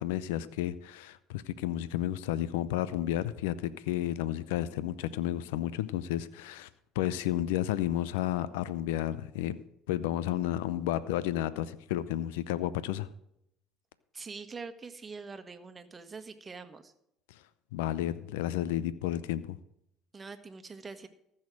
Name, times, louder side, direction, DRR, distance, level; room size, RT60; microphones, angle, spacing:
voice 1, 0.0-6.7 7.0-9.6 9.9-13.1 17.7-19.6, left 12 dB, 80° left, 17 dB, 0.5 m, -32 dB
voice 2, 14.1-16.9 20.1-21.1, right 4 dB, 30° right, 8 dB, 1.5 m, -44 dB
14.5 x 6.5 x 6.2 m, 0.77 s
hypercardioid pair, 70°, 0 cm